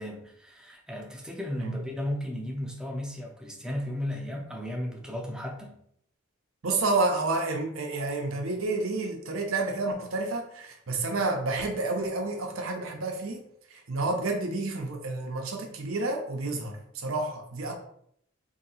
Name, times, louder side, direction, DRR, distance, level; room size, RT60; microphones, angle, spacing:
voice 1, 0.0-5.8, left 1 dB, 5° right, 1 dB, 0.5 m, -35 dB
voice 2, 6.6-13.4 13.7-17.8, right 2 dB, 85° right, 2 dB, 0.8 m, -30 dB
2.9 x 2.8 x 4.0 m, 0.69 s
head